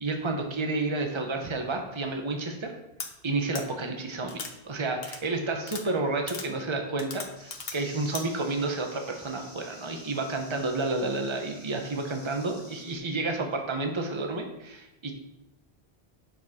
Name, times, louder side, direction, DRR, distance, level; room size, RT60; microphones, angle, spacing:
voice 1, 0.0-2.7 3.2-4.4 4.6-15.1, right 2 dB, 30° right, 3 dB, 1.1 m, -30 dB
sound 1, 3.0-3.1 3.5-3.6 4.3-4.5 5.0-5.2 5.6-5.8 6.3-6.5 7.0-7.8 8.1-8.2, left 4 dB, 65° left, 1.3 m, -37 dB
sound 2, 7.3-13.0, left 1 dB, 25° left, 2.0 m, -49 dB
9.1 x 6.7 x 4.3 m, 0.90 s
omnidirectional pair, 1.1 m